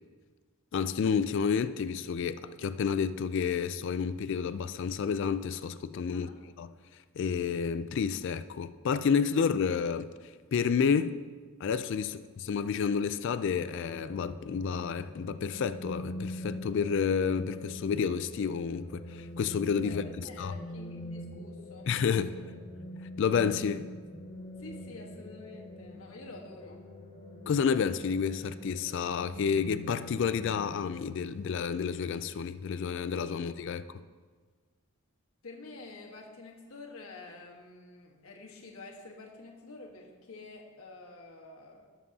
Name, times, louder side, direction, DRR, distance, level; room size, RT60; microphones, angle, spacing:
voice 1, 0.7-6.3 6.6-6.7 7.2-10.1 10.5-11.2 11.6-20.0 20.4-20.5 21.9-22.3 23.2-23.9 27.5-33.8, left 6 dB, 55° left, 0.3 m, -30 dB
voice 2, 6.1-6.4 12.0-12.2 19.8-22.2 24.6-26.8 35.4-41.9, left 3 dB, 70° left, 1.4 m, -49 dB
sound 1, 13.6-31.1, equal, 25° left, 0.7 m, -44 dB
16.5 x 7.2 x 2.8 m
head